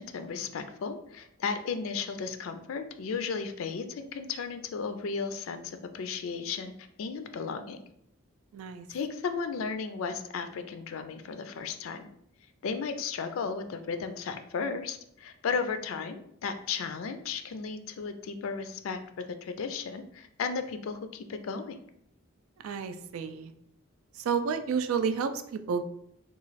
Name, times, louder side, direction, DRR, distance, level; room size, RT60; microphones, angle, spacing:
voice 1, 0.0-6.7 7.0-7.8 8.9-12.1 12.6-19.0 19.4-21.8, left 5 dB, 70° left, 8 dB, 0.4 m, -34 dB
voice 2, 8.5-8.9 22.6-23.5 24.2-25.8, right 6 dB, 85° right, 9 dB, 0.4 m, -30 dB
3.0 x 2.3 x 4.0 m, 0.73 s
head